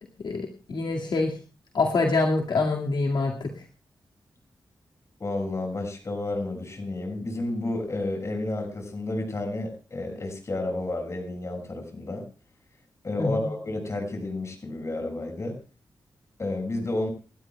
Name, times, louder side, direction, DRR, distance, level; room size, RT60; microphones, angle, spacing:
voice 1, 0.2-1.3 1.7-3.5 13.2-13.5, left 3 dB, 75° left, 0 dB, 2.1 m, -25 dB
voice 2, 5.2-12.2 13.0-15.6 16.4-17.1, left 2 dB, 40° left, 4 dB, 6.2 m, -31 dB
28.5 x 13.0 x 2.3 m, 0.34 s
wide cardioid pair, 100°, 8 cm